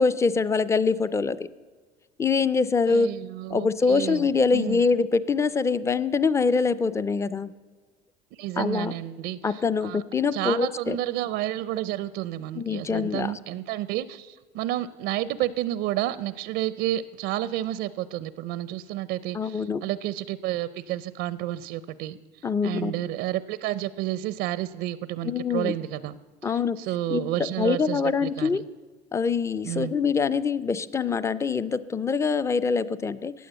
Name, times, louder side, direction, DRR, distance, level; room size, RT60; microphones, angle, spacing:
voice 1, 0.0-1.5 2.2-3.1 3.5-7.5 8.6-8.9 9.4-11.0 12.6-13.3 19.3-19.8 22.4-23.0 25.2-25.7 26.4-26.8 27.1-28.6 29.1-33.3, left 5 dB, 15° left, 16 dB, 0.5 m, -24 dB
voice 2, 2.9-4.3 4.5-4.8 8.4-10.0 10.3-22.2 22.6-26.2 26.4-28.6 29.6-29.9, right 14 dB, 70° right, 17 dB, 0.6 m, -30 dB
15.5 x 9.4 x 8.0 m, 1.5 s
cardioid pair, 135°, 19 cm